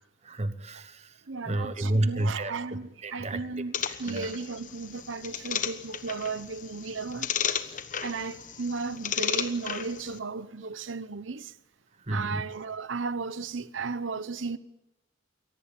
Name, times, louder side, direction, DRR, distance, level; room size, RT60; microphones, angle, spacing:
voice 1, 0.2-3.4 3.8-4.3 12.0-12.4, right 1 dB, 35° right, 1.1 m, -31 dB
voice 2, 1.3-11.6 12.1-14.6, right 4 dB, 80° right, 0.9 m, -35 dB
sound 1, 3.7-10.2, left 8 dB, 40° left, 1.2 m, -34 dB
23.0 x 18.0 x 8.8 m
head